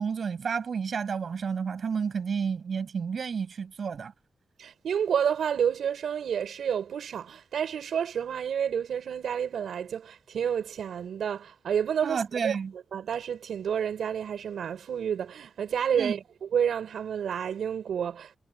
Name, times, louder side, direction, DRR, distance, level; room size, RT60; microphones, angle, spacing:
voice 1, 0.0-4.1 12.0-12.7 16.0-16.2, right 6 dB, 50° right, 7.7 m, -31 dB
voice 2, 4.6-12.6 12.9-18.4, right 8 dB, 90° right, 5.2 m, -30 dB
wide cardioid pair, 170°, 0 cm